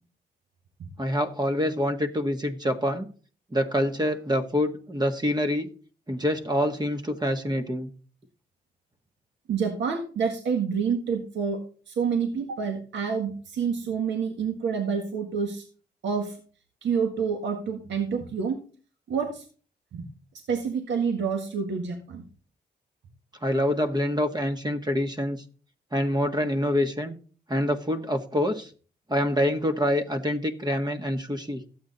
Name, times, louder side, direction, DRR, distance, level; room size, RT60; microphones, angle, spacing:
voice 1, 1.0-3.1 3.5-5.7 6.1-7.9 23.4-25.4 25.9-27.1 27.5-28.7 29.1-31.6, equal, 20° right, 6 dB, 1.6 m, -26 dB
voice 2, 9.5-11.6 11.9-15.6 16.0-16.4 16.8-18.6 19.1-19.4 19.9-20.1 20.5-22.2, right 6 dB, 75° right, 3 dB, 1.8 m, -28 dB
12.5 x 8.5 x 4.1 m, 0.40 s
supercardioid pair, 55°, 19 cm